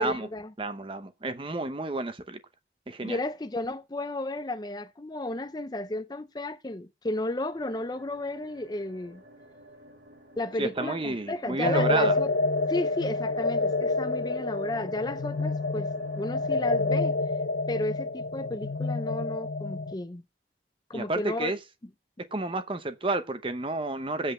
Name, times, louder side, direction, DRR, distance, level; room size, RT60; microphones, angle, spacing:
voice 1, 0.0-0.5 3.0-9.2 10.4-12.3 12.7-17.1 17.7-20.2 20.9-21.5, left 2 dB, 20° left, 0.5 m, -33 dB
voice 2, 0.6-2.4 2.9-3.2 10.6-12.2 20.9-21.6 22.3-24.3, right 2 dB, 30° right, 0.8 m, -30 dB
sound 1, 7.5-17.0, equal, 80° right, 2.6 m, -50 dB
sound 2, 11.6-19.9, left 3 dB, 70° left, 0.6 m, -28 dB
7.9 x 5.6 x 6.7 m
head